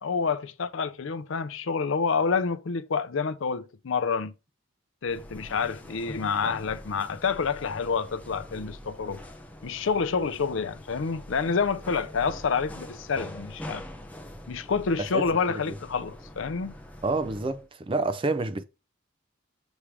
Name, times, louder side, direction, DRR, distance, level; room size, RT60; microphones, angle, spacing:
voice 1, 0.0-4.3 5.0-9.2 9.6-13.8 14.5-16.7, left 5 dB, 65° left, 0.5 m, -28 dB
sound 1, 5.1-17.7, left 1 dB, 5° left, 0.7 m, -44 dB
voice 2, 15.1-15.8 17.0-18.6, right 3 dB, 25° right, 0.4 m, -29 dB
7.2 x 3.3 x 4.9 m
head